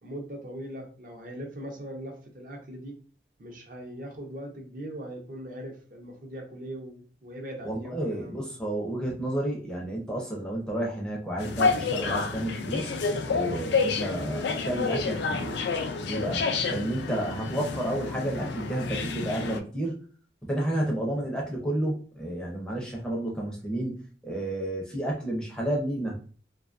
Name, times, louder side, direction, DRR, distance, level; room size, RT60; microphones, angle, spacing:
voice 1, 0.0-3.0 3.4-8.5 16.9-17.2 20.5-20.7, right 1 dB, 50° right, 1 dB, 0.6 m, -40 dB
voice 2, 7.6-15.5 16.0-19.9 20.5-26.2, right 1 dB, 5° left, -3 dB, 0.5 m, -31 dB
sound 1, 11.4-19.6, left 4 dB, 75° left, 0.3 m, -29 dB
2.5 x 2.3 x 2.5 m, 0.41 s
head